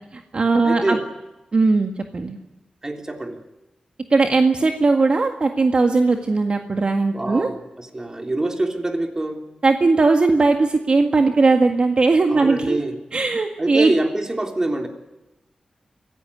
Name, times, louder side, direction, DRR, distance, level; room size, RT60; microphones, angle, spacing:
voice 1, 0.1-1.0 1.5-2.4 4.1-7.5 9.6-12.8 13.1-13.9, right 3 dB, 50° right, 4 dB, 1.8 m, -18 dB
voice 2, 0.6-1.0 2.8-3.4 7.1-9.4 12.3-13.0 13.6-14.9, right 2 dB, 25° right, 4 dB, 3.3 m, -25 dB
25.0 x 16.5 x 9.8 m, 1.0 s
wide cardioid pair, 95°, 2 cm